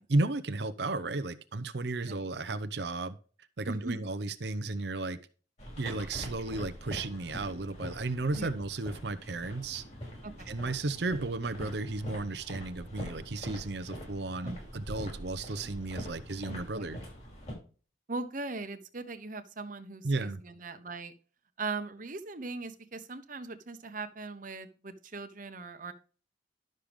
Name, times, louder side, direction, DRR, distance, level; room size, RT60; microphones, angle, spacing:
voice 1, 0.0-3.2 3.6-5.2 5.8-9.8 10.5-17.0 20.0-20.4, right 2 dB, 60° right, 0.7 m, -34 dB
voice 2, 3.7-4.0 8.3-8.5 10.2-10.5 14.4-14.6 16.7-16.9 18.1-21.1 21.6-25.9, right 3 dB, 45° right, 1.1 m, -39 dB
sound 1, 5.6-17.5, equal, 40° left, 5.8 m, -43 dB
12.0 x 6.5 x 3.6 m
head